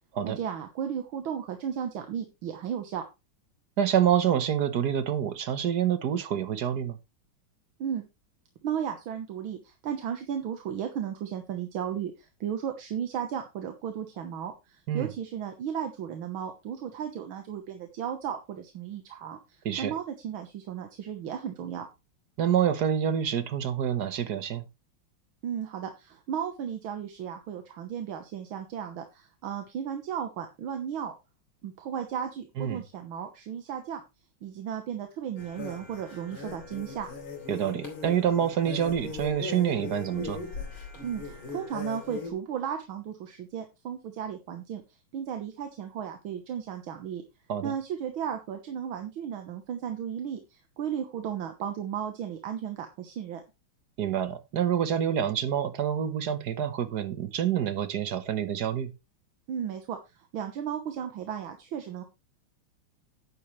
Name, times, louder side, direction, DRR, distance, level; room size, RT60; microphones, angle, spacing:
voice 1, 0.2-3.0 7.8-8.0 8.6-21.9 25.4-31.1 31.6-34.0 34.4-37.1 41.0-44.8 45.1-47.2 47.6-53.4 59.5-60.0 60.3-62.0, right 8 dB, 75° right, 1.9 m, -35 dB
voice 2, 3.8-7.0 14.9-15.1 19.6-19.9 22.4-24.6 32.6-32.8 37.5-40.4 47.5-47.7 54.0-58.9, right 9 dB, 55° right, 1.5 m, -27 dB
sound 1, 35.4-42.3, left 4 dB, 80° left, 3.9 m, -39 dB
10.0 x 10.0 x 3.2 m
omnidirectional pair, 2.3 m